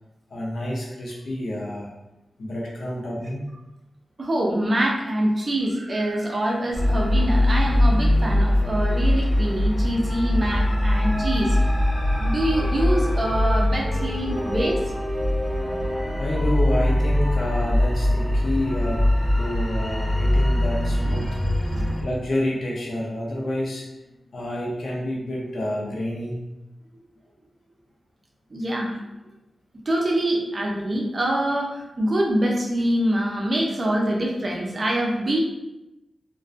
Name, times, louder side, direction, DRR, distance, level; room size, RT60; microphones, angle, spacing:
voice 1, 0.3-1.9 2.4-3.5 16.2-19.1 19.4-21.3 21.6-21.7 22.0-23.9 24.3-26.4, left 1 dB, 65° left, -4 dB, 0.6 m, -28 dB
voice 2, 4.2-11.6 12.2-14.8 21.0-21.3 21.7-21.9 28.5-29.0 29.9-35.4, right 1 dB, 35° right, -1 dB, 0.4 m, -25 dB
sound 1, 6.7-22.0, left 1 dB, 25° left, 0.6 m, -22 dB
sound 2, 12.5-16.5, equal, 10° right, 0.7 m, -32 dB
2.4 x 2.2 x 2.4 m, 0.96 s
wide cardioid pair, 160°, 0 cm